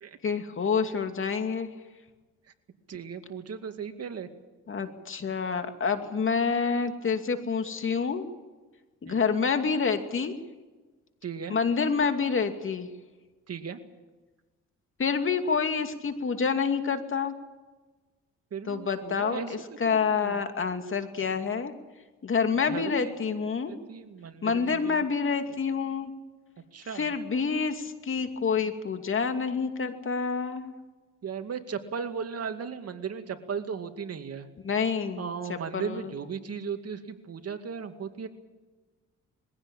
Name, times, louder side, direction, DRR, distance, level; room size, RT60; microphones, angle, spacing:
voice 1, 0.2-1.7 4.7-8.2 9.0-10.3 11.5-12.9 15.0-17.3 18.6-21.7 22.2-23.7 24.4-26.1 26.9-30.7 34.6-36.1, left 5 dB, 45° left, 6 dB, 2.6 m, -28 dB
voice 2, 2.9-4.3 9.1-9.2 11.2-11.6 13.5-13.8 18.5-19.5 19.9-20.4 22.7-23.2 23.7-25.0 26.7-27.1 31.2-34.5 35.2-38.3, right 6 dB, 55° right, 7 dB, 2.2 m, -36 dB
22.5 x 16.5 x 9.0 m, 1.2 s
cardioid pair, 90°, 30 cm